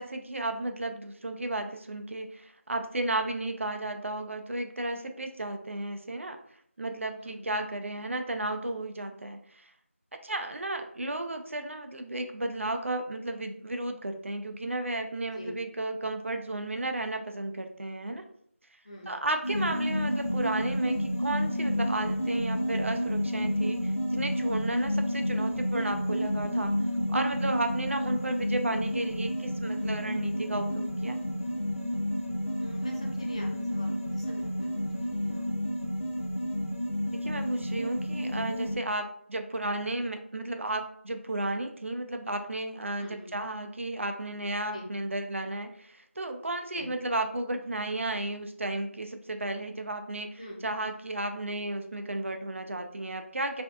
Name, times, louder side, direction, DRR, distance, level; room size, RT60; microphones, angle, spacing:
voice 1, 0.0-6.4 6.8-9.7 10.2-18.2 19.1-26.7 27.1-31.2 37.1-53.6, right 2 dB, 60° right, 6 dB, 0.3 m, -33 dB
voice 2, 15.2-15.5 18.8-19.1 32.6-35.4 43.0-43.3 44.7-44.9 46.7-46.9 50.4-50.6, equal, 25° left, -2 dB, 0.4 m, -44 dB
sound 1, 19.4-38.8, equal, 85° left, 0.9 m, -30 dB
2.5 x 2.2 x 2.3 m, 0.66 s
figure-of-eight pair, 170°, 8 cm